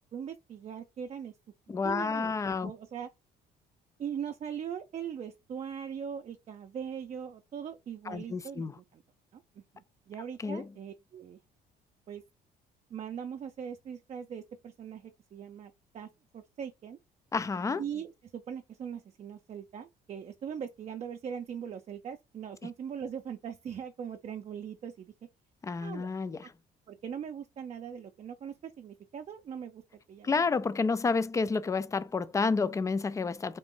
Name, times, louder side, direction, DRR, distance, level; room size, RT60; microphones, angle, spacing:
voice 1, 0.1-1.3 1.8-2.3 2.6-3.1 4.0-9.0 9.3-9.4 9.7-11.4 12.1-12.2 12.9-16.1 16.3-17.0 17.8-25.1 25.8-26.1 26.9-29.8 30.1-30.4, right 8 dB, 40° right, 0.5 m, -40 dB
voice 2, 1.7-2.7 8.1-8.7 10.4-10.7 17.3-17.8 25.6-26.5 30.2-33.6, left 4 dB, 20° left, 0.3 m, -30 dB
3.8 x 2.4 x 3.6 m
cardioid pair, 110°, 17 cm